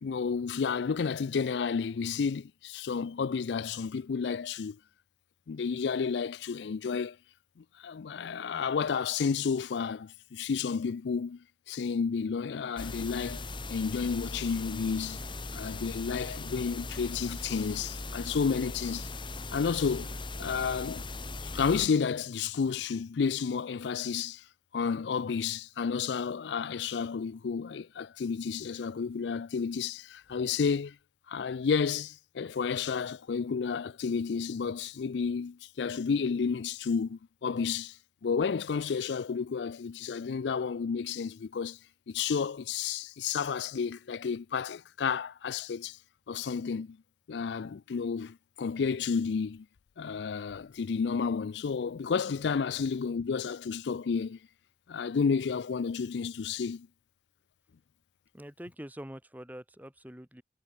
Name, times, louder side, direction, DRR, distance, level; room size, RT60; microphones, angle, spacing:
voice 1, 0.0-4.8 5.5-7.2 7.6-15.2 15.5-19.1 19.5-20.1 20.4-21.1 21.4-24.4 24.7-31.0 31.3-41.8 42.1-46.0 46.3-47.0 47.3-49.7 50.0-54.4 54.9-56.9, left 5 dB, 70° left, 0.4 m, -31 dB
sound 1, 12.8-21.9, left 3 dB, 25° left, 1.6 m, -39 dB
voice 2, 58.3-60.4, equal, 10° right, 3.1 m, -45 dB
head